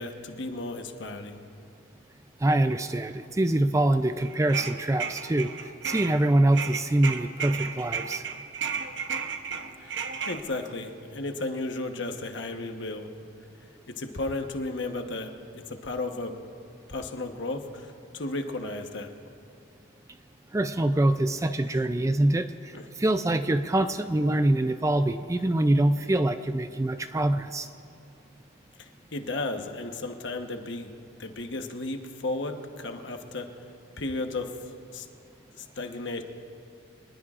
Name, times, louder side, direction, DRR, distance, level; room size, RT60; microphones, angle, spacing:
voice 1, 0.0-1.4 9.8-13.1 13.9-16.4 16.9-19.1 22.7-22.9 28.8-30.9 31.2-33.5 34.0-34.5 34.9-35.1 35.6-36.2, left 2 dB, 60° left, 5 dB, 1.1 m, -34 dB
voice 2, 2.4-8.3 20.5-27.7, right 1 dB, 15° right, 9 dB, 0.3 m, -24 dB
sound 1, 4.2-6.2 6.5-10.4, right 6 dB, 60° right, 0.9 m, -33 dB
25.0 x 20.0 x 2.5 m, 2.5 s
head